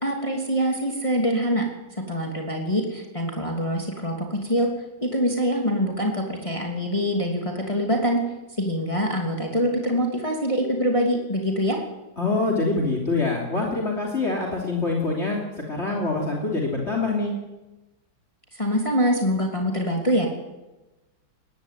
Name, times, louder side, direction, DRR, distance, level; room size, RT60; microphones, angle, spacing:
voice 1, 0.0-1.7 1.9-4.7 5.0-8.2 8.6-11.8 18.5-20.3, equal, 15° left, 1 dB, 3.0 m, -24 dB
voice 2, 12.2-15.4 15.7-17.3, left 3 dB, 35° left, 1 dB, 3.4 m, -25 dB
20.5 x 16.0 x 9.3 m, 1.0 s
omnidirectional pair, 2.0 m